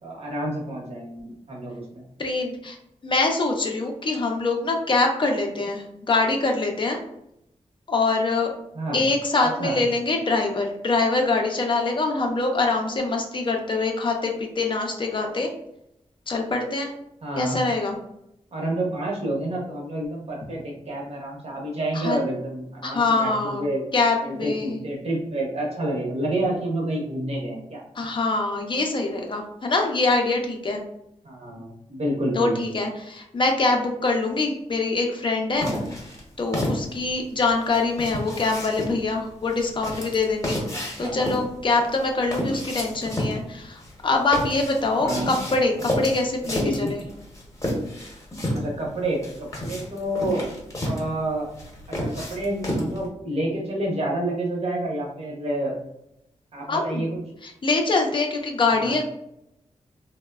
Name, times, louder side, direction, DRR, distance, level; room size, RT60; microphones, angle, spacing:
voice 1, 0.0-2.0 8.7-9.0 9.6-9.7 17.2-17.6 18.5-23.8 24.2-27.8 31.2-32.6 40.7-41.2 45.0-45.3 46.6-46.9 48.5-50.5 50.8-51.5 51.9-55.8 56.5-57.1 58.7-58.9, right 1 dB, 55° right, -2 dB, 0.8 m, -29 dB
voice 2, 2.2-2.8 3.0-7.0 7.9-8.5 8.9-15.5 16.3-16.9 17.4-18.0 21.9-22.2 22.8-23.6 23.9-24.8 28.0-30.8 32.3-35.7 36.4-40.6 41.0-47.0 56.7-57.1 57.4-59.0, left 3 dB, 40° left, 2 dB, 0.4 m, -24 dB
sound 1, 35.6-53.1, equal, 25° left, 0.8 m, -31 dB
3.0 x 2.0 x 2.2 m, 0.80 s
wide cardioid pair, 110°, 13 cm